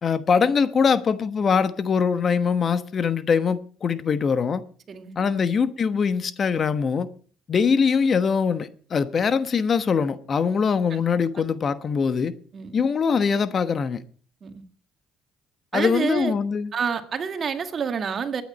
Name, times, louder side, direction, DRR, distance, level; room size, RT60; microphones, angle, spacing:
voice 1, 0.0-4.6 5.2-7.1 7.5-12.3 12.7-14.0 15.7-16.7, left 6 dB, 45° left, 1.1 m, -22 dB
voice 2, 4.9-5.4 10.9-11.0 11.4-11.5 12.5-12.8 14.4-14.6 15.7-16.3 16.7-18.4, right 6 dB, 45° right, 1.8 m, -28 dB
21.5 x 9.3 x 4.3 m
supercardioid pair, 70°, 0 cm